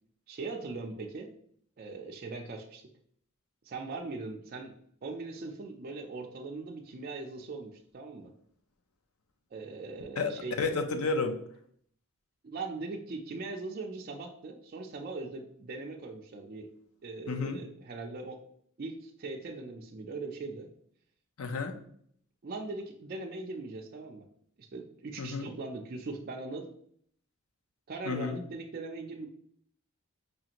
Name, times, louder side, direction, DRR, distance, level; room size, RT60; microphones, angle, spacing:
voice 1, 0.3-1.3 1.8-2.8 3.6-4.7 5.0-8.3 9.5-10.5 12.4-16.7 17.0-18.4 18.8-20.7 22.4-24.3 24.6-26.7 27.9-29.3, right 3 dB, 45° right, 1 dB, 0.4 m, -40 dB
voice 2, 10.6-11.4 17.3-17.6 21.4-21.7 25.2-25.5 28.1-28.4, left 4 dB, 80° left, 6 dB, 0.5 m, -31 dB
4.9 x 2.5 x 2.9 m, 0.64 s
head